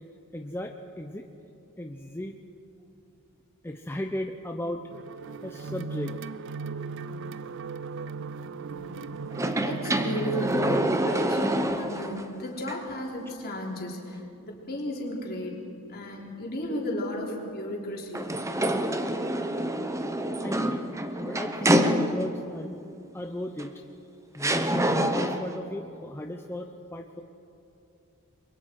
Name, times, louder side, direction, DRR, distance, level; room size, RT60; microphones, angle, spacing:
voice 1, 0.3-1.3 1.8-2.4 3.6-4.8 5.4-6.3 9.5-9.6 20.4-20.8 21.2-22.8 23.1-23.9 24.3-27.2, left 1 dB, 10° left, 3 dB, 0.7 m, -36 dB
sound 1, 4.9-11.2, right 4 dB, 55° right, 0.6 m, -37 dB
sound 2, 9.3-12.2 12.7-12.8 18.1-22.5 23.6-23.7 24.4-25.6, right 1 dB, 15° right, 0.9 m, -27 dB
voice 2, 9.6-15.6 15.9-18.3, equal, 45° left, -2 dB, 3.8 m, -34 dB
30.0 x 23.0 x 4.7 m, 2.7 s
head